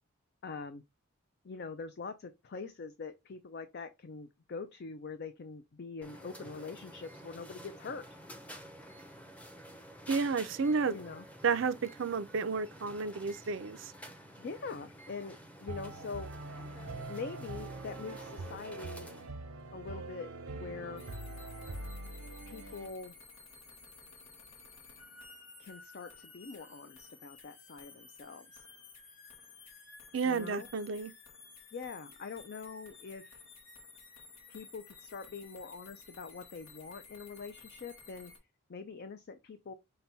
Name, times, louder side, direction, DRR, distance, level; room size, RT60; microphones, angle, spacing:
voice 1, 0.4-0.8 1.4-8.0 10.9-11.3 14.4-16.3 17.1-19.1 19.7-21.1 22.5-23.2 25.6-28.6 30.2-30.7 31.7-33.4 34.5-38.3 38.7-39.7, left 4 dB, 50° left, 0.4 m, -44 dB
sound 1, 6.0-19.3, equal, 5° left, 0.6 m, -50 dB
voice 2, 10.1-10.9 11.4-13.9 30.1-31.1, right 5 dB, 60° right, 0.4 m, -31 dB
sound 2, 15.7-22.9, right 2 dB, 85° right, 0.8 m, -44 dB
sound 3, 21.0-38.4, left 4 dB, 65° left, 1.5 m, -54 dB
5.8 x 2.2 x 3.9 m
head